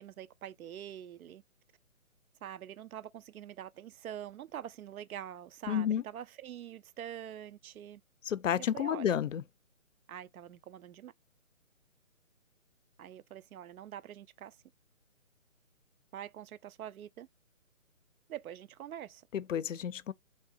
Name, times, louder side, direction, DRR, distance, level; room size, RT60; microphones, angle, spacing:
voice 1, 0.0-1.4 2.4-8.0 8.5-9.2 10.1-11.1 13.0-14.6 16.1-17.3 18.3-19.2, right 10 dB, 85° right, 0.5 m, -45 dB
voice 2, 5.7-6.0 8.3-9.4 19.3-20.1, left 9 dB, 65° left, 0.5 m, -31 dB
3.7 x 3.3 x 2.6 m
hypercardioid pair, 175°, 41 cm